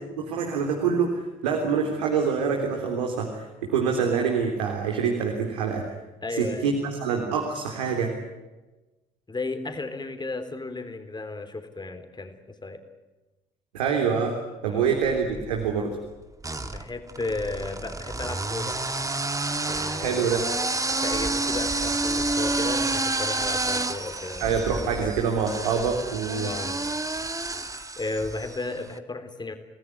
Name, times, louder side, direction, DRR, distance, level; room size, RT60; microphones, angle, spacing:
voice 1, 0.2-5.8 6.4-8.2 13.7-14.4 14.6-16.0 20.0-20.4 24.4-26.5, right 6 dB, 75° right, 2 dB, 3.7 m, -26 dB
voice 2, 6.2-6.7 9.3-12.3 12.6-12.8 14.6-14.9 16.6-18.8 19.7-20.3 20.5-24.5 24.8-25.2 26.4-26.8 27.7-29.5, left 3 dB, 20° left, 8 dB, 3.8 m, -34 dB
sound 1, 15.0-15.7 16.4-28.7, right 2 dB, 15° right, 2.1 m, -29 dB
30.0 x 19.5 x 9.8 m, 1.1 s
figure-of-eight pair, 50°, 21 cm